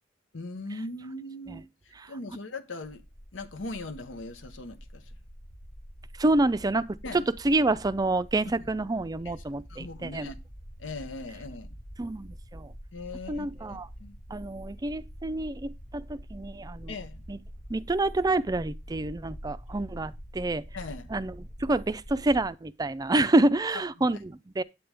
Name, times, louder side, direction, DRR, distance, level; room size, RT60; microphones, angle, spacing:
voice 1, 0.3-1.7 2.1-3.0 3.3-5.1 7.0-7.3 9.2-9.4 9.7-10.4 10.8-11.7 12.9-14.2 16.9-17.2 20.7-21.1 23.7-24.2, left 2 dB, 85° left, 1.0 m, -40 dB
sound 1, 2.9-22.5, equal, 50° left, 1.4 m, -45 dB
voice 2, 6.2-6.8 7.1-10.3 12.0-12.7 13.3-13.9 14.3-16.9 17.3-17.4 17.7-20.6 21.1-21.3 21.6-24.6, right 2 dB, 20° right, 0.4 m, -27 dB
8.7 x 8.4 x 3.4 m
head